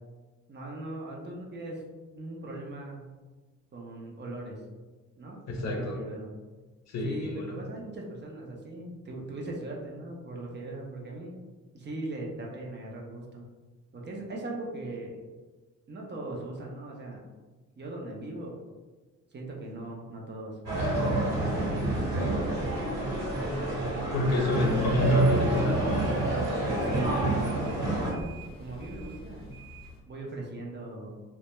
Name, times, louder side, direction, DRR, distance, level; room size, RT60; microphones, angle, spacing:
voice 1, 0.5-1.8 2.1-3.1 3.7-4.6 5.2-6.3 7.0-11.4 11.7-13.4 13.9-15.2 15.9-17.2 17.8-18.6 19.3-22.0 26.8-28.0 28.6-29.6 30.1-31.1, right 2 dB, 35° right, -1 dB, 0.6 m, -39 dB
voice 2, 5.5-6.0 6.9-7.6 24.1-25.9, left 1 dB, 60° left, 1 dB, 0.6 m, -27 dB
sound 1, 20.7-28.1, right 1 dB, 65° right, 1.1 m, -28 dB
sound 2, 24.4-30.0, left 1 dB, 20° left, 0.8 m, -44 dB
2.2 x 2.1 x 2.9 m, 1.3 s
cardioid pair, 90°, 30 cm